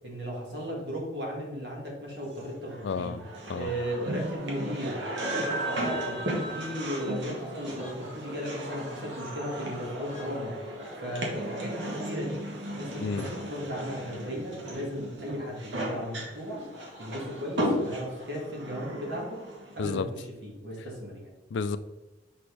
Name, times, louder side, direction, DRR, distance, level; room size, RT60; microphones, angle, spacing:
voice 1, 0.0-3.1 3.5-5.0 5.3-6.2 6.5-10.5 11.0-12.4 12.8-16.6 17.0-19.4 19.7-21.3, equal, 60° right, 2.0 m, -36 dB
sound 1, 2.4-19.9, right 1 dB, 75° right, 1.5 m, -35 dB
voice 2, 2.8-3.2 3.5-3.7 13.0-13.3 19.8-20.1 21.5-21.8, left 5 dB, 75° left, 0.4 m, -31 dB
sound 2, 4.2-13.3 14.2-14.6 14.9-19.5, equal, 35° right, 2.2 m, -54 dB
6.0 x 5.6 x 3.3 m
head